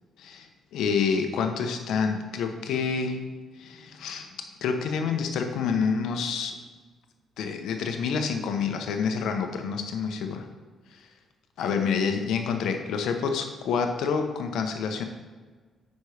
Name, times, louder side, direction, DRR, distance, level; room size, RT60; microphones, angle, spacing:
voice 1, 0.2-3.2 3.6-4.3 4.6-6.6 7.4-10.5 11.0-11.1 11.6-15.0, left 6 dB, 80° left, 5 dB, 0.8 m, -28 dB
8.4 x 5.3 x 3.3 m, 1.4 s
cardioid pair, 90°, 0 cm